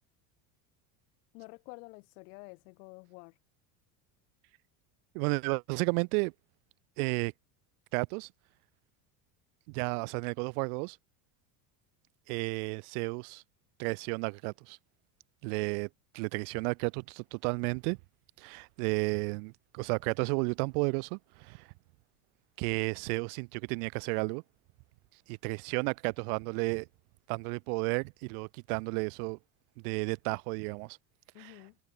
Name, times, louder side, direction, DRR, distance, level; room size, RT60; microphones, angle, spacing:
voice 1, 1.3-3.3 31.3-31.8, left 28 dB, 80° left, 3.4 m, -49 dB
voice 2, 5.1-6.3 7.0-7.3 7.9-8.3 9.7-11.0 12.3-13.4 13.8-14.8 15.4-18.0 18.4-21.7 22.6-24.4 25.3-26.9 27.3-29.4 29.8-31.0 31.4-31.6, right 35 dB, 70° right, 0.8 m, -32 dB
cardioid pair, 155°, 46 cm